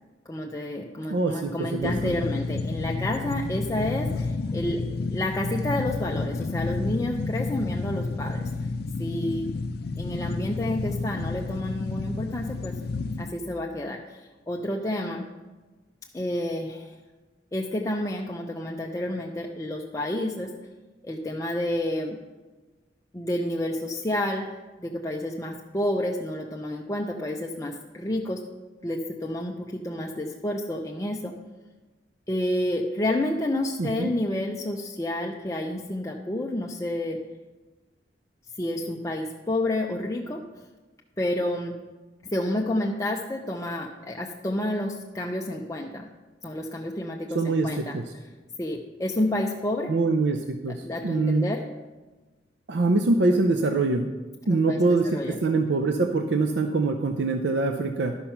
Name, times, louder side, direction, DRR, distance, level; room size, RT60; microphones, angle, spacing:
voice 1, 0.3-8.5 9.0-9.5 10.0-12.8 13.2-15.3 16.1-16.9 17.5-20.6 21.0-22.2 23.1-24.5 24.8-28.4 28.8-31.3 32.3-37.2 38.6-40.4 41.2-41.8 42.2-46.1 46.4-48.0 48.6-49.9 50.8-51.7 54.5-55.4, left 1 dB, 20° left, -1 dB, 0.6 m, -30 dB
voice 2, 1.1-2.1 33.8-34.1 47.3-48.0 49.9-51.5 52.7-54.1 54.5-58.2, right 3 dB, 75° right, 5 dB, 0.6 m, -24 dB
sound 1, 1.8-13.3, left 3 dB, 60° left, 0.5 m, -30 dB
11.5 x 5.5 x 5.8 m, 1.2 s
head